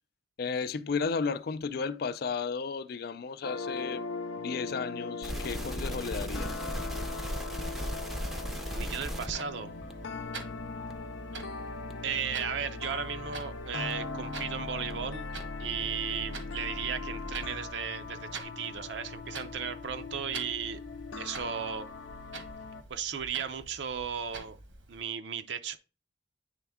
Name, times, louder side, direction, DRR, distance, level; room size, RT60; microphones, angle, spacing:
voice 1, 0.4-4.1 4.4-6.6 7.3-7.4 10.1-10.2, left 5 dB, 55° left, 0.4 m, -34 dB
sound 1, 3.4-22.8, left 3 dB, 85° left, 0.7 m, -39 dB
sound 2, 5.2-9.4 9.9-10.0 10.4-10.5 10.9-11.0 11.4-11.5 11.9-12.0 12.4-12.5 12.9-13.0 13.4-13.5 13.9-14.0 14.4-14.5 14.9-15.0 15.4-15.5, equal, ahead, 0.5 m, -36 dB
voice 2, 8.7-9.7 12.0-15.3 15.6-20.8 21.2-21.9 22.9-24.6 24.9-25.8, right 7 dB, 65° right, 0.5 m, -35 dB
Clock, 9.0-25.0, right 3 dB, 85° right, 1.3 m, -48 dB
9.1 x 3.4 x 3.5 m
head